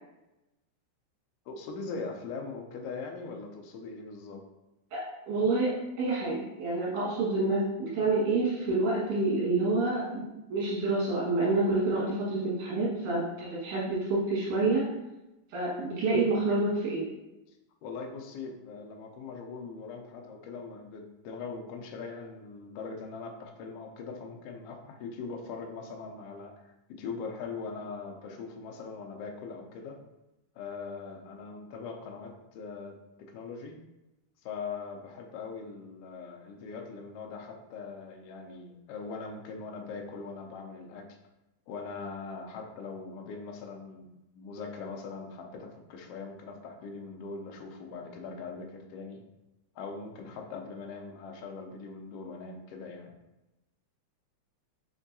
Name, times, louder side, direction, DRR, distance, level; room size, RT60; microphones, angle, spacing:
voice 1, 1.5-4.4 17.8-30.0 30.5-33.0 33.3-33.8 34.4-41.1 41.7-44.1 44.3-49.2 49.7-53.1, left 4 dB, 90° left, 2 dB, 1.3 m, -41 dB
voice 2, 4.9-14.9 15.5-17.1, right 2 dB, 80° right, -6 dB, 3.0 m, -28 dB
5.9 x 2.6 x 2.6 m, 0.99 s
omnidirectional pair, 3.4 m